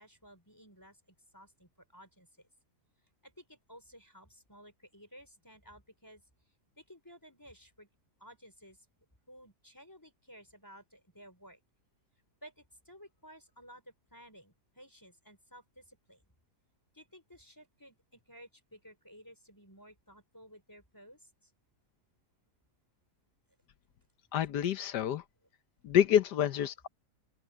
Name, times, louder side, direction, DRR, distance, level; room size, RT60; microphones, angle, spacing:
voice 1, 0.0-2.3 3.2-6.2 6.8-7.9 8.2-8.9 9.3-11.6 12.4-16.2 16.9-21.5, equal, 10° left, 4.3 m, -55 dB
voice 2, 24.3-25.2 25.8-26.9, left 10 dB, 85° left, 1.5 m, -27 dB
open air
omnidirectional pair, 1.7 m